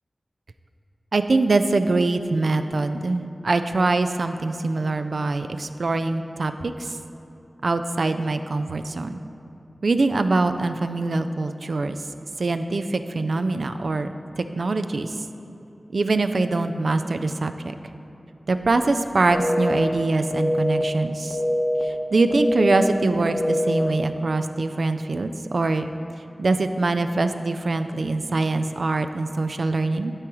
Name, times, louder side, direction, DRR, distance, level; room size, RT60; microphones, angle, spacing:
voice 1, 1.1-7.0 7.6-9.2 9.8-12.0 12.4-15.1 15.9-17.7 18.5-21.4 21.8-25.9 26.4-30.1, right 3 dB, 80° right, 9 dB, 0.3 m, -23 dB
sound 1, 19.3-19.8 20.3-20.8 21.3-21.8 22.3-22.8 23.3-23.8, equal, 70° left, 0.9 m, -23 dB
12.0 x 4.7 x 3.0 m, 2.9 s
wide cardioid pair, 55°, 0 cm